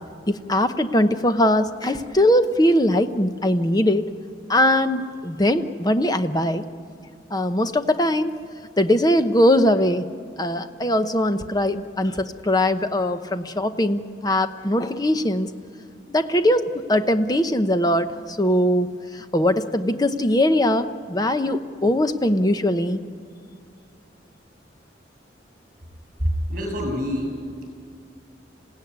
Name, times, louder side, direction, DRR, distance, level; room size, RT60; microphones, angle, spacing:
voice 1, 0.3-4.1 4.5-6.6 7.3-8.3 8.8-10.1 10.4-15.5 16.1-23.0, left 1 dB, 20° left, 9 dB, 0.9 m, -21 dB
voice 2, 26.2-27.4, equal, 45° right, 2 dB, 7.2 m, -25 dB
28.0 x 16.0 x 9.5 m, 2.4 s
head